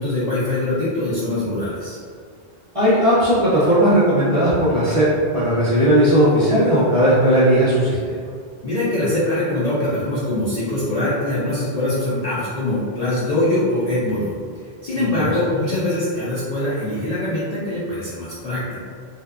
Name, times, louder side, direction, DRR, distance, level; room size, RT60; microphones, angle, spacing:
voice 1, 0.0-2.0 8.6-14.4 14.8-18.6, left 1 dB, 55° left, -10 dB, 0.4 m, -23 dB
voice 2, 2.7-5.0 5.3-8.2 15.0-15.1, equal, 45° right, -11 dB, 0.5 m, -16 dB
2.6 x 2.2 x 2.3 m, 2.1 s
omnidirectional pair, 1.1 m